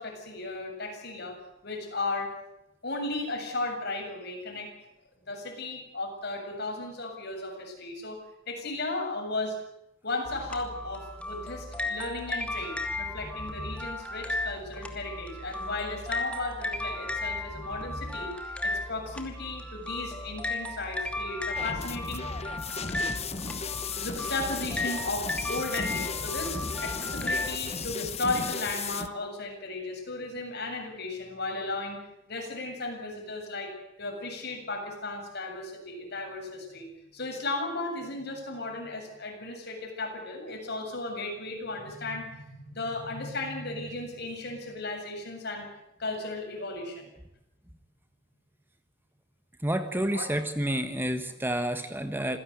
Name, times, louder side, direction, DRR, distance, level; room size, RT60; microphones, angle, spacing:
voice 1, 0.0-1.4 1.6-2.3 2.8-4.7 5.3-8.2 8.5-9.6 10.0-22.3 24.0-32.0 32.3-33.7 34.0-36.9 37.1-45.7 46.0-47.1 50.1-50.2, left 2 dB, 55° left, 3 dB, 7.6 m, -35 dB
sound 1, 10.3-27.5, left 2 dB, 5° left, 2.8 m, -35 dB
sound 2, 21.5-29.1, left 5 dB, 35° left, 1.1 m, -35 dB
voice 2, 49.6-52.4, right 1 dB, 10° right, 8 dB, 1.4 m, -29 dB
27.5 x 17.0 x 8.1 m, 0.89 s
head